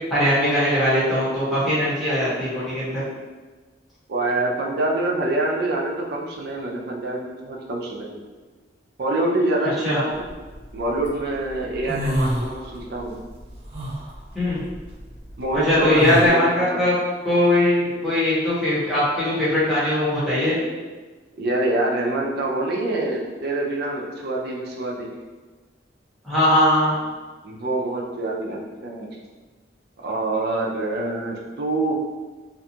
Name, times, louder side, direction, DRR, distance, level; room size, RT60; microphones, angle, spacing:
voice 1, 0.1-3.0 9.8-10.0 14.3-14.6 15.5-16.9 17.2-20.6 26.2-26.9, left 1 dB, ahead, -11 dB, 0.9 m, -20 dB
voice 2, 4.1-8.2 9.0-10.3 10.7-13.1 15.4-16.9 21.4-25.1 27.4-29.1 30.0-31.9, right 2 dB, 60° right, -1 dB, 0.5 m, -25 dB
sound 1, 10.3-11.1 11.5-13.0 13.3-16.3, equal, 35° right, 0.9 m, -28 dB
2.5 x 2.3 x 2.7 m, 1.3 s
head